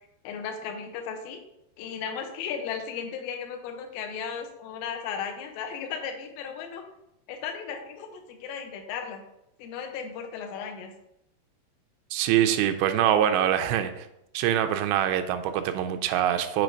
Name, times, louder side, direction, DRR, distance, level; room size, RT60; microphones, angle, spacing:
voice 1, 0.2-1.4 1.8-6.8 7.3-9.2 9.6-10.9, left 7 dB, 75° left, 4 dB, 2.2 m, -35 dB
voice 2, 12.1-14.1 14.3-16.6, right 10 dB, 85° right, 7 dB, 2.8 m, -24 dB
7.7 x 3.1 x 5.1 m, 0.82 s
omnidirectional pair, 5.0 m